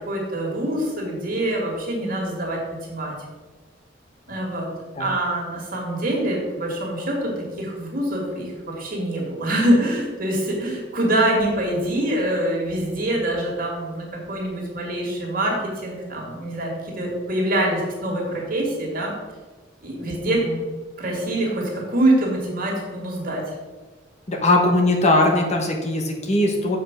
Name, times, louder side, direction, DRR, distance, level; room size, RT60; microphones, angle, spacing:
voice 1, 0.1-2.6 2.9-3.1 4.3-4.7 5.0-19.1 19.8-20.4 21.0-23.4, right 1 dB, 50° right, -1 dB, 2.4 m, -24 dB
voice 2, 24.3-26.8, left 2 dB, 35° left, 1 dB, 1.2 m, -20 dB
7.0 x 5.3 x 6.1 m, 1.3 s
head